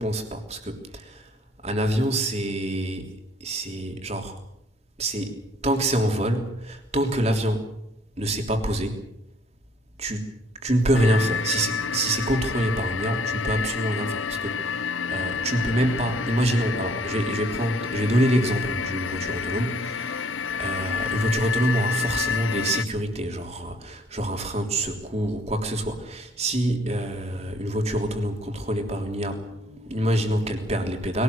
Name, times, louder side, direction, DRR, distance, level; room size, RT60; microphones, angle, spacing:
voice 1, 0.0-1.3 1.6-4.4 5.0-7.7 8.2-9.1 10.0-10.3 10.6-31.2, right 1 dB, 35° right, 4 dB, 3.4 m, -26 dB
sound 1, 10.9-22.8, left 7 dB, 85° left, 0.7 m, -29 dB
22.5 x 18.0 x 8.1 m, 0.82 s
head